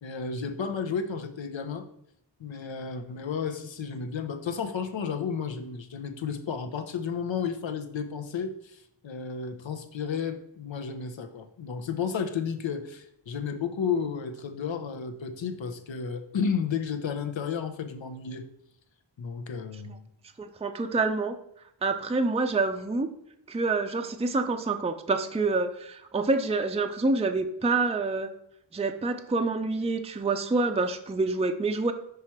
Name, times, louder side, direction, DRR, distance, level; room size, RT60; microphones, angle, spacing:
voice 1, 0.0-1.9 2.4-18.4 19.2-20.1, left 6 dB, 75° left, 8 dB, 0.8 m, -32 dB
voice 2, 20.4-21.4 21.8-23.1 23.5-28.3 28.7-31.9, right 3 dB, 15° right, 7 dB, 0.4 m, -27 dB
5.8 x 4.8 x 4.4 m, 0.75 s
wide cardioid pair, 75°, 45 cm